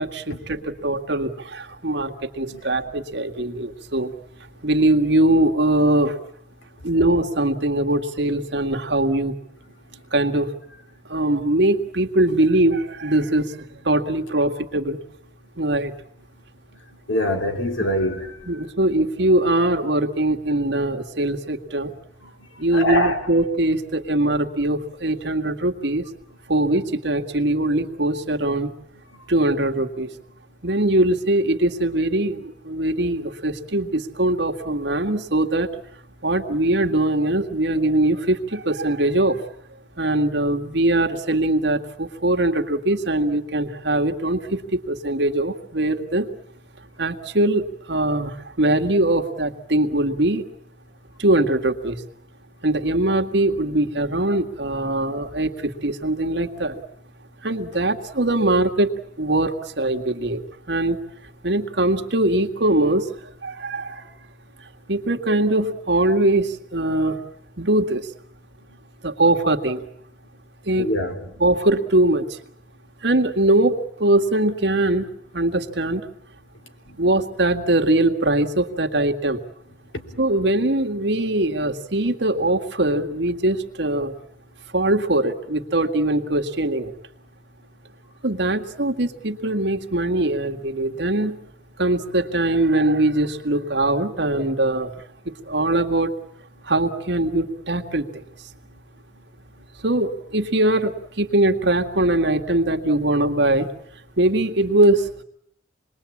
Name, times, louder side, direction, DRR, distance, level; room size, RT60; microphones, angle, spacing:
voice 1, 0.0-4.1 4.6-6.1 6.8-9.4 10.1-10.5 11.1-13.5 13.9-15.0 15.6-15.9 17.8-17.9 18.5-21.9 22.6-26.0 26.5-28.7 29.3-30.1 30.6-35.7 36.2-39.4 40.0-46.3 47.0-48.3 48.6-50.4 51.2-52.0 52.6-55.5 55.8-56.8 57.4-58.9 59.2-60.4 60.7-61.0 61.4-63.1 63.4-64.0 64.9-67.2 67.6-68.0 69.0-69.8 70.7-70.9 71.4-72.3 73.0-75.1 75.3-76.0 77.0-79.4 80.2-84.1 84.7-86.9 88.2-91.4 91.8-94.9 95.3-96.1 96.7-98.1 99.8-103.7 104.2-105.2, right 1 dB, 65° right, 1.9 m, -21 dB
voice 2, 17.1-18.3 22.7-23.2 70.8-71.2, equal, 90° left, 3.4 m, -23 dB
27.0 x 21.5 x 8.6 m
head